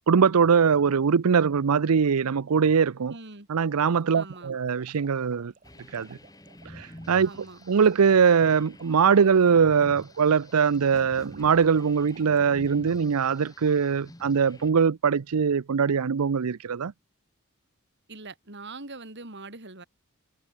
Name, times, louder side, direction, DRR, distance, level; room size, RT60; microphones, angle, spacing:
voice 1, 0.1-3.1 3.5-5.5 5.9-6.2 6.7-16.9, right 6 dB, 80° right, 0.5 m, -22 dB
voice 2, 3.1-3.5 4.1-4.5 7.2-7.6 18.1-19.8, right 3 dB, 50° right, 3.5 m, -42 dB
sound 1, 3.8-13.8, right 4 dB, 35° right, 6.8 m, -56 dB
sound 2, 5.6-14.7, left 1 dB, 15° left, 1.8 m, -48 dB
head